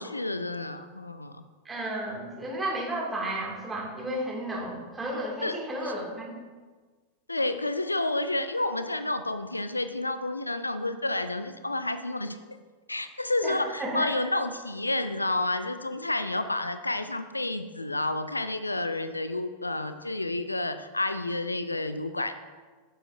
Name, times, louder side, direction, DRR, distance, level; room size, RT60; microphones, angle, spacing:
voice 1, 0.0-1.4 5.4-5.6 7.3-12.4 12.9-22.4, left 2 dB, 85° left, 10 dB, 0.4 m, -30 dB
voice 2, 1.6-6.3 13.4-14.1, right 1 dB, 15° right, -3 dB, 2.3 m, -33 dB
9.7 x 7.1 x 2.6 m, 1.4 s
figure-of-eight pair, 90°, 0 cm